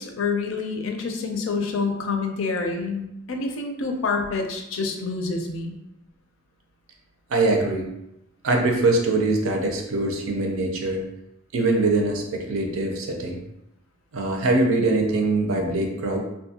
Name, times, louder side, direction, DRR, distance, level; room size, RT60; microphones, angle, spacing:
voice 1, 0.0-5.8, left 4 dB, 70° left, 3 dB, 0.4 m, -27 dB
voice 2, 7.3-7.8 8.4-11.0 11.5-13.4 14.1-16.2, right 2 dB, 80° right, 2 dB, 0.5 m, -23 dB
2.6 x 2.2 x 2.7 m, 0.87 s
head